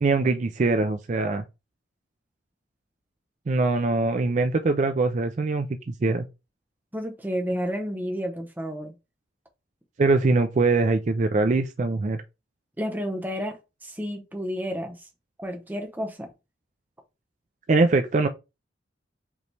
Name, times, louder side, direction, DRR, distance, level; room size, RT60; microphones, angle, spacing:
voice 1, 0.0-1.4 3.5-6.3 10.0-12.2 17.7-18.3, right 3 dB, 40° right, 0.4 m, -22 dB
voice 2, 6.9-8.9 12.8-13.6 13.8-15.0 15.4-16.3, equal, 10° right, 0.8 m, -31 dB
5.2 x 3.1 x 3.2 m
head